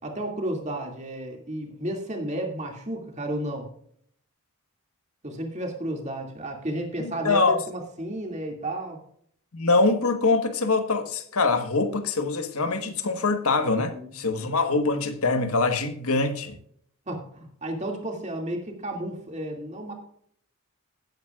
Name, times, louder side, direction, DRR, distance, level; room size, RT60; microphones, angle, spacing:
voice 1, 0.0-3.7 5.2-9.0 13.8-14.1 17.1-19.9, right 1 dB, 30° right, 2.4 m, -32 dB
voice 2, 7.0-7.6 9.5-16.6, left 3 dB, 80° left, 1.3 m, -24 dB
17.5 x 9.2 x 2.4 m
head